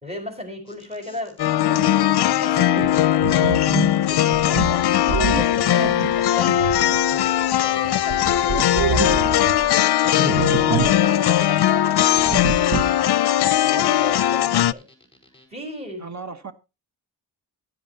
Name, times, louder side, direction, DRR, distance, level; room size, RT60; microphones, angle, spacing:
voice 1, 0.0-7.3 7.6-9.4 10.0-12.9 13.6-14.9 15.5-16.1, left 2 dB, 15° right, 4.6 m, -36 dB
sound 1, 0.7-15.5, left 1 dB, 15° left, 5.4 m, -53 dB
sound 2, 1.4-14.7, left 12 dB, 65° left, 0.5 m, -19 dB
sound 3, 2.5-7.6 7.9-9.7 10.2-11.1 11.3-11.4 12.2-13.1, right 6 dB, 60° right, 0.9 m, -27 dB
voice 2, 16.0-16.5, right 4 dB, 40° right, 1.1 m, -37 dB
15.5 x 10.0 x 2.8 m
wide cardioid pair, 110°, 42 cm